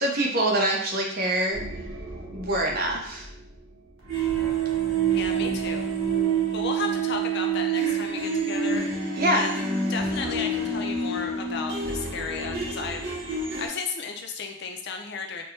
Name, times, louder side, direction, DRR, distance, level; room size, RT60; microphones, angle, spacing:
voice 1, 0.0-1.6 2.3-3.3 9.2-9.5, right 1 dB, 50° right, -1 dB, 0.7 m, -24 dB
sound 1, 1.5-3.5 4.0-13.7, right 5 dB, 90° right, 1.0 m, -28 dB
voice 2, 5.1-5.9 6.5-9.6 9.9-13.1 13.6-15.4, left 5 dB, 55° left, 4 dB, 0.5 m, -34 dB
4.2 x 2.2 x 3.2 m, 0.71 s
head